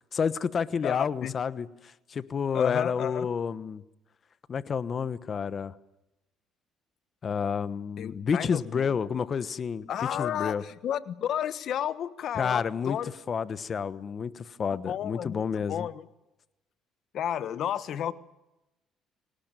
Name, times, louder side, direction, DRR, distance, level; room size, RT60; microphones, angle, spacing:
voice 1, 0.1-3.8 4.5-5.7 7.2-10.6 12.3-13.0 13.3-15.9, left 6 dB, 40° left, 16 dB, 1.1 m, -30 dB
voice 2, 0.8-1.3 2.5-3.3 8.0-8.9 9.9-13.1 14.9-16.1 17.1-18.1, left 10 dB, 60° left, 15 dB, 1.2 m, -32 dB
24.5 x 18.5 x 9.0 m, 0.95 s
cardioid pair, 100°, 0 cm